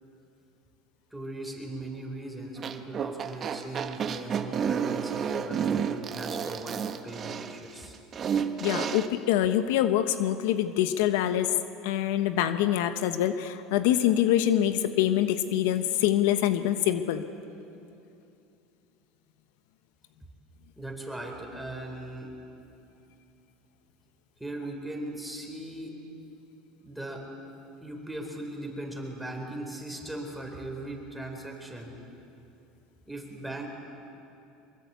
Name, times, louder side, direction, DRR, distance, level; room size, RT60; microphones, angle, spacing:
voice 1, 1.1-8.0 20.8-22.4 24.4-26.0 26.8-27.3 27.8-32.1 33.1-33.7, right 1 dB, ahead, 1 dB, 4.3 m, -39 dB
sound 1, 2.6-9.1, right 7 dB, 35° right, 1.2 m, -31 dB
voice 2, 8.6-11.5 11.8-17.2, left 11 dB, 80° left, 10 dB, 1.1 m, -25 dB
23.5 x 22.5 x 8.3 m, 2.7 s
supercardioid pair, 125°, 0 cm